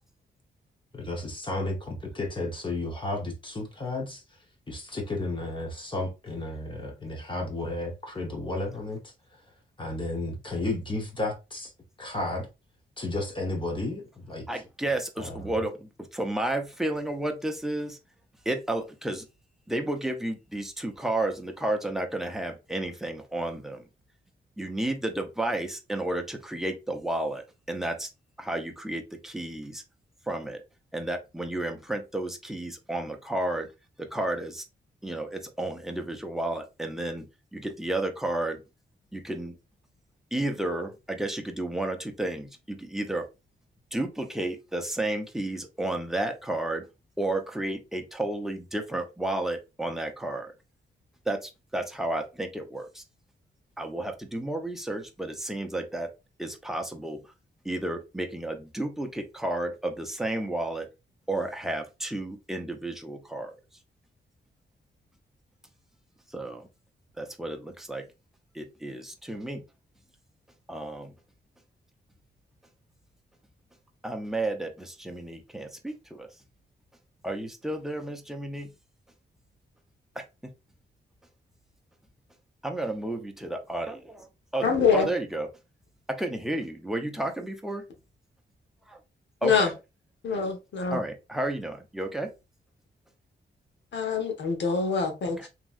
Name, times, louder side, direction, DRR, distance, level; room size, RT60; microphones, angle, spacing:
voice 1, 0.9-4.2 4.7-9.1 9.8-11.7 12.0-12.5 13.0-14.5 15.2-15.5, left 2 dB, 25° left, 0.9 m, -33 dB
voice 2, 14.5-18.0 18.4-19.2 19.7-23.8 24.6-28.1 28.4-29.8 30.3-30.6 30.9-33.7 34.0-34.7 35.0-37.3 37.5-38.6 39.1-39.5 40.3-43.3 43.9-46.9 47.2-50.5 51.3-53.0 53.8-56.1 56.4-57.2 57.6-60.9 61.3-63.5 66.3-66.7 67.2-68.0 68.5-69.6 70.7-71.1 74.0-76.3 77.2-78.7 80.2-80.3 82.6-84.3 84.5-84.7 84.9-85.5 86.1-87.8 88.9-89.0 89.4-89.7 90.9-92.3 95.4-95.5, right 1 dB, ahead, 0.6 m, -32 dB
voice 3, 84.6-85.1 89.4-89.7 90.2-91.0 93.9-95.5, left 5 dB, 75° left, 1.0 m, -25 dB
3.0 x 2.7 x 2.4 m
cardioid pair, 85°, 19 cm